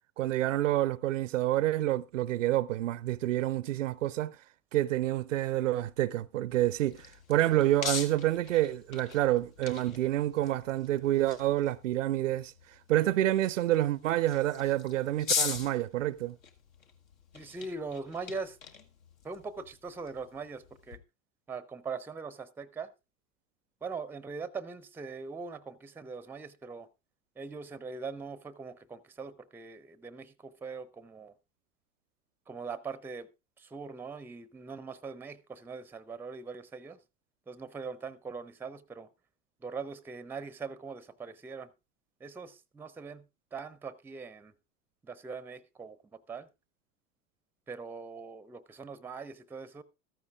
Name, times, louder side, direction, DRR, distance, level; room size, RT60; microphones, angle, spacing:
voice 1, 0.2-4.4 4.7-12.5 12.9-16.4, right 14 dB, 65° right, 0.6 m, -28 dB
sound 1, 6.5-21.0, left 6 dB, 75° left, 1.3 m, -41 dB
voice 2, 17.3-18.6 19.2-21.0 21.5-22.9 23.8-26.9 27.4-31.3 32.5-33.3 33.6-37.0 37.5-39.1 39.6-41.7 42.2-43.2 43.5-44.5 45.0-46.5 47.7-49.8, right 4 dB, 5° right, 0.5 m, -41 dB
14.5 x 13.5 x 2.4 m
figure-of-eight pair, 80°, 42 cm